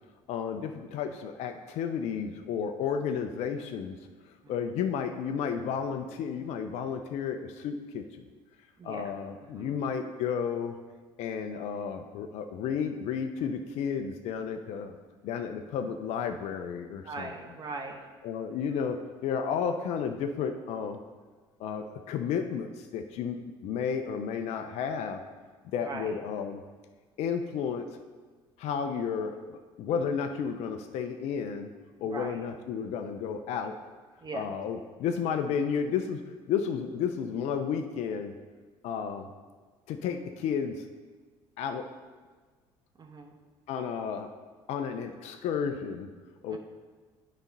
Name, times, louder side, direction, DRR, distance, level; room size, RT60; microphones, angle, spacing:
voice 1, 0.3-4.0 4.5-8.3 8.8-10.8 11.2-15.0 15.2-17.3 18.2-21.0 21.6-25.2 25.6-26.6 27.2-27.9 28.6-31.7 32.0-33.8 34.3-36.2 36.5-38.3 38.8-39.3 39.9-40.8 41.6-41.9 43.7-44.3 44.7-46.1 46.4-46.6, left 7 dB, 65° left, 6 dB, 0.6 m, -32 dB
voice 2, 8.8-9.1 9.4-9.7 17.0-18.0 18.5-18.6 25.8-26.1 32.0-32.4 34.2-34.5 43.0-43.3 46.5-46.6, right 3 dB, 35° right, 2 dB, 1.0 m, -40 dB
9.0 x 4.2 x 5.3 m, 1.4 s
hypercardioid pair, 70°, 12 cm